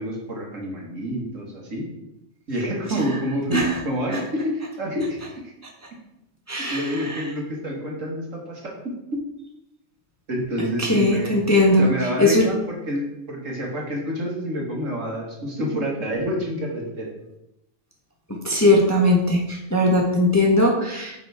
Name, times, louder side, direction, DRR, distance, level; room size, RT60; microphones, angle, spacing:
voice 1, 0.0-1.8 2.5-3.6 3.8-5.5 6.7-9.2 10.3-11.4 11.7-17.1, equal, 65° right, -2 dB, 2.3 m, -28 dB
voice 2, 6.5-7.2 10.8-11.9 12.2-12.5 18.3-21.1, left 1 dB, 15° left, -1 dB, 1.1 m, -19 dB
9.3 x 6.0 x 3.5 m, 0.88 s
omnidirectional pair, 1.4 m